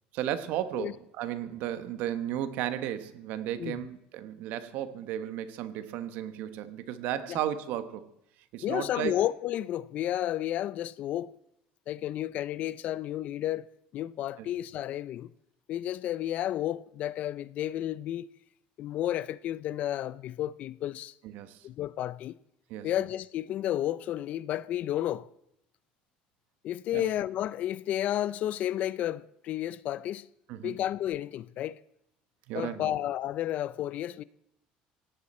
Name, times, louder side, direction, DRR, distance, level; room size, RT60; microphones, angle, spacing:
voice 1, 0.1-8.1 8.5-9.2 14.4-14.5 21.2-21.7 22.7-22.9 26.9-27.1 30.5-30.7 32.5-32.9, right 11 dB, 70° right, 1.1 m, -34 dB
voice 2, 8.6-11.3 11.9-13.7 13.9-15.3 15.7-18.3 18.8-21.1 21.6-22.3 22.8-25.3 26.6-30.3 30.6-31.8 32.5-34.2, left 12 dB, 50° left, 0.5 m, -32 dB
18.5 x 17.0 x 4.3 m
cardioid pair, 135°, 3 cm